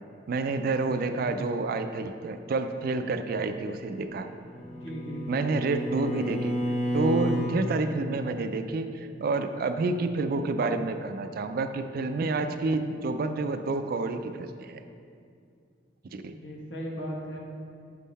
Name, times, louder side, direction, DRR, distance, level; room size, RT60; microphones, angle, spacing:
voice 1, 0.3-4.3 5.3-6.5 6.9-14.8 16.1-16.3, right 3 dB, 50° right, 8 dB, 0.3 m, -29 dB
voice 2, 1.0-1.3 4.6-5.4 16.2-17.4, equal, 70° left, -2 dB, 1.1 m, -38 dB
Bowed string instrument, 4.2-7.6, equal, 40° left, 0.9 m, -31 dB
8.3 x 3.7 x 4.1 m, 2.4 s
head